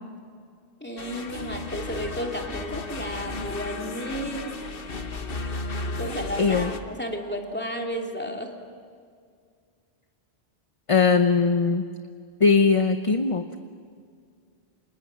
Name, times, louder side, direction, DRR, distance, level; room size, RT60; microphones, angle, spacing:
voice 1, 0.8-4.6 6.0-8.5, equal, 10° left, 1 dB, 2.8 m, -33 dB
sound 1, 1.0-6.8, left 3 dB, 60° left, 1.5 m, -34 dB
voice 2, 6.4-6.7 10.9-11.8 12.4-13.6, left 4 dB, 35° left, 8 dB, 0.9 m, -20 dB
29.0 x 26.5 x 7.6 m, 2.1 s
omnidirectional pair, 1.1 m